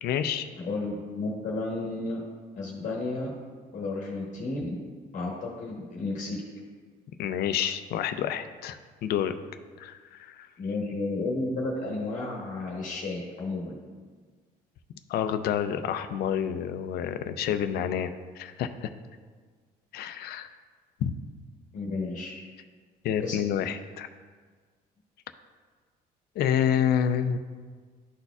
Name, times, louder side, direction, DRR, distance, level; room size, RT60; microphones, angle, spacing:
voice 1, 0.0-0.5 7.2-9.3 9.8-10.5 15.1-18.9 19.9-20.5 21.0-21.1 23.0-24.1 26.4-27.4, left 9 dB, 65° left, 10 dB, 0.5 m, -28 dB
voice 2, 0.6-2.2 2.5-3.3 3.7-4.8 5.1-6.4 10.6-13.8 21.7-22.3 23.2-23.4, left 2 dB, 50° left, -2 dB, 1.1 m, -32 dB
11.5 x 4.1 x 2.3 m, 1.5 s
cardioid pair, 110°, 17 cm